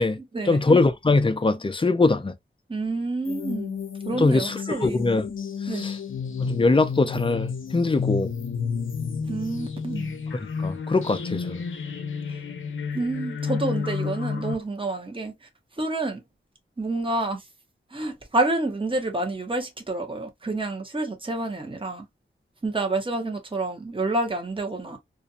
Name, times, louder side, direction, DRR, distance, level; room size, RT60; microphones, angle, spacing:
voice 1, 0.5-2.3 4.2-5.3 5.6-5.9 6.4-8.3 10.6-11.6, left 3 dB, 25° left, 0.4 m, -22 dB
voice 2, 2.7-3.8 4.0-5.0 5.7-5.9 9.3-10.1 12.9-15.3 15.8-16.2 16.8-17.4 17.9-22.1 22.6-25.0, right 2 dB, 25° right, 0.8 m, -28 dB
sound 1, 3.3-14.5, left 6 dB, 70° left, 0.6 m, -31 dB
2.5 x 2.2 x 2.6 m
wide cardioid pair, 65°, 21 cm